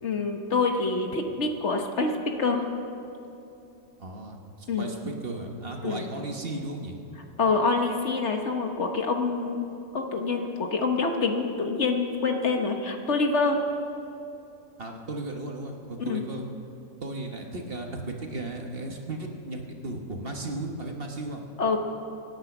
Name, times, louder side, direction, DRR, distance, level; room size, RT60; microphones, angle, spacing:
voice 1, 0.0-2.7 4.7-4.9 5.8-6.1 7.4-9.7 9.9-13.6 16.0-16.2 21.6-21.8, left 4 dB, 55° left, 4 dB, 1.5 m, -26 dB
voice 2, 4.0-7.0 14.8-16.4 17.0-21.4, right 2 dB, 45° right, 2 dB, 1.5 m, -35 dB
25.0 x 9.6 x 6.1 m, 2.7 s
omnidirectional pair, 1.4 m